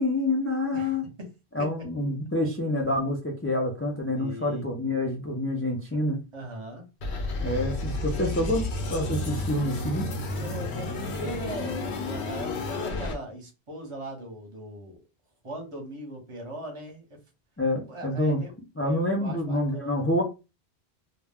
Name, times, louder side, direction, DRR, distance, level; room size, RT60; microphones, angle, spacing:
voice 1, 0.0-1.0 1.5-6.2 7.4-8.6 8.9-10.1 17.6-18.4 18.8-20.2, left 1 dB, 20° left, 0.3 m, -27 dB
voice 2, 0.7-1.3 1.6-1.7 4.1-4.6 6.3-6.8 10.4-15.0 15.4-17.1 17.9-20.0, right 1 dB, 30° right, 0.9 m, -40 dB
sound 1, 7.0-13.1, left 2 dB, 85° left, 0.9 m, -31 dB
2.3 x 2.1 x 3.4 m
omnidirectional pair, 1.1 m